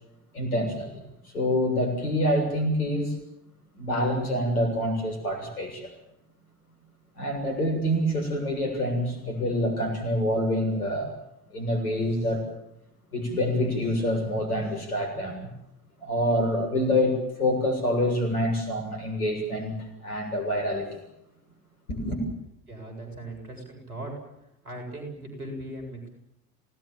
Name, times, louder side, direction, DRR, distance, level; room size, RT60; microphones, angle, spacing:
voice 1, 0.3-3.1 3.8-5.9 7.2-11.1 11.5-12.5 13.1-15.5 16.0-21.0 21.9-22.2, left 1 dB, 80° left, 4 dB, 7.2 m, -26 dB
voice 2, 22.7-24.1 24.6-26.1, right 1 dB, 85° right, 3 dB, 7.8 m, -38 dB
27.5 x 19.0 x 7.4 m, 0.82 s
figure-of-eight pair, 60°, 44 cm